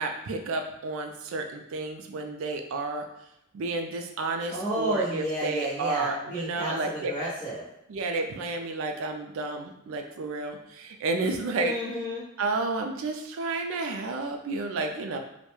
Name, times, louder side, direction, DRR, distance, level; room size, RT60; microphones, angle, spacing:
voice 1, 0.0-3.1 3.5-7.1 7.9-11.7 12.4-15.2, right 3 dB, 60° right, 4 dB, 0.3 m, -31 dB
voice 2, 4.5-7.6 11.6-12.2, right 1 dB, 25° left, -12 dB, 0.8 m, -31 dB
2.2 x 2.1 x 3.0 m, 0.83 s
head